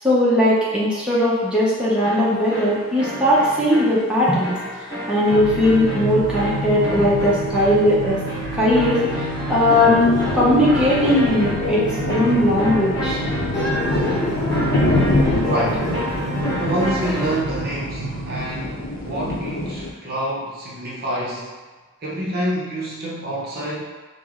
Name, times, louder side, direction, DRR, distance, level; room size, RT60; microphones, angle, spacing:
voice 1, 0.0-8.2 8.5-13.2, left 1 dB, 5° right, -8 dB, 0.7 m, -19 dB
sound 1, 2.0-17.5, equal, 15° left, 1.3 m, -29 dB
sound 2, 5.3-18.4, right 1 dB, 85° right, 0.5 m, -29 dB
sound 3, 9.1-19.9, left 2 dB, 75° left, 0.6 m, -26 dB
voice 2, 15.3-15.8 16.6-21.5 22.0-23.8, right 1 dB, 45° right, -4 dB, 0.6 m, -27 dB
4.8 x 2.1 x 3.6 m, 1.3 s
head